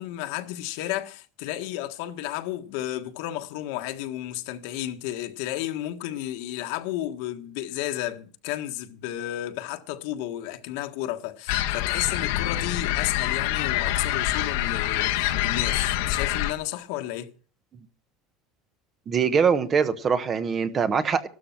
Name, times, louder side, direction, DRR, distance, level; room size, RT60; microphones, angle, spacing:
voice 1, 0.0-17.3, left 13 dB, 65° left, 1.5 m, -32 dB
sound 1, 11.5-16.5, left 13 dB, 85° left, 1.4 m, -26 dB
voice 2, 19.1-21.3, right 6 dB, 20° right, 1.0 m, -23 dB
16.0 x 13.0 x 5.9 m
cardioid pair, 175°, 0 cm